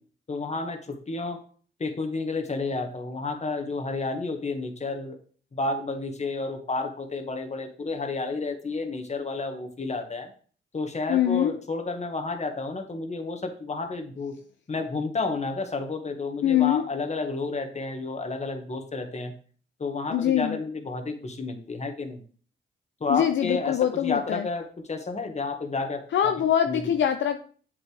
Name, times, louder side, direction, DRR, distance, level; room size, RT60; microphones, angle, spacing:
voice 1, 0.3-1.4 1.8-5.2 5.5-10.3 10.7-14.3 14.7-19.3 19.8-22.2 23.0-26.3 26.7-26.9, left 3 dB, 35° left, 5 dB, 1.8 m, -31 dB
voice 2, 11.1-11.6 16.4-16.8 20.1-20.6 23.1-24.5 26.1-27.4, left 10 dB, 65° left, 7 dB, 0.6 m, -23 dB
8.2 x 7.2 x 3.4 m, 0.43 s
supercardioid pair, 60°, 21 cm